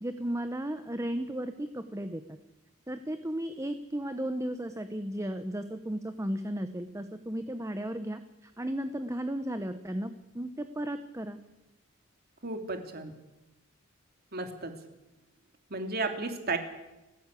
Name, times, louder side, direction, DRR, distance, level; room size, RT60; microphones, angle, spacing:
voice 1, 0.0-2.2 2.9-11.4, right 1 dB, 15° right, 9 dB, 1.1 m, -35 dB
voice 2, 12.4-13.1 14.3-14.8 15.7-16.6, right 3 dB, 45° right, 6 dB, 3.2 m, -33 dB
30.0 x 16.0 x 8.5 m, 1.0 s
head